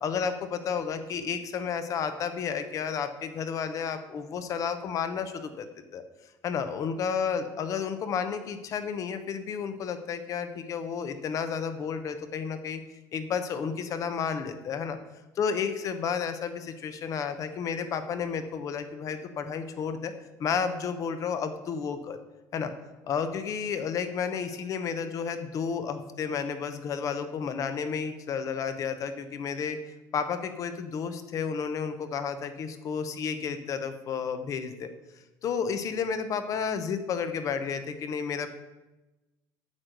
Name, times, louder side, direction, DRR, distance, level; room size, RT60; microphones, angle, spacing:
voice 1, 0.0-5.7 5.9-6.0 6.4-12.8 13.1-15.0 15.4-20.1 20.4-22.2 22.5-22.7 23.1-29.8 30.1-34.9 35.4-38.5, left 6 dB, 45° left, 10 dB, 0.8 m, -31 dB
8.5 x 4.6 x 6.5 m, 1.1 s
cardioid pair, 135°, 8 cm